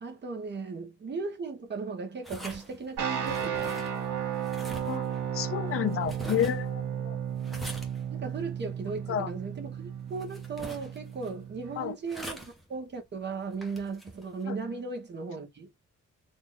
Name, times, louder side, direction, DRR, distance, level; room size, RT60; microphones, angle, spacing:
voice 1, 0.0-3.8 8.1-15.7, right 4 dB, 35° right, 1.4 m, -37 dB
sound 1, 2.2-14.4, equal, ahead, 1.1 m, -46 dB
sound 2, 3.0-11.9, right 8 dB, 75° right, 1.6 m, -34 dB
voice 2, 5.3-7.2 9.1-9.3 11.8-12.0 14.5-14.6, left 10 dB, 45° left, 0.5 m, -30 dB
4.0 x 2.5 x 3.3 m
cardioid pair, 145°, 31 cm